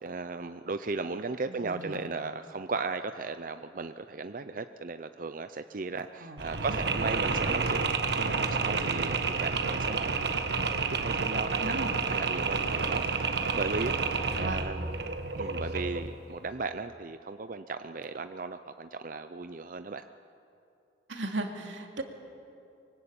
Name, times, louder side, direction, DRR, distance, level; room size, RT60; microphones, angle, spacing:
voice 1, 0.0-7.9 8.2-10.1 10.9-13.3 13.5-14.0 14.4-14.9 15.4-20.0, right 3 dB, 45° right, 9 dB, 0.6 m, -36 dB
voice 2, 1.5-2.0 6.2-6.8 11.6-11.9 14.4-14.8 21.1-22.0, right 2 dB, 85° right, 3 dB, 2.7 m, -37 dB
Mechanisms, 6.4-16.1, right 4 dB, 60° right, 1.4 m, -30 dB
24.5 x 23.0 x 8.9 m, 2.7 s
head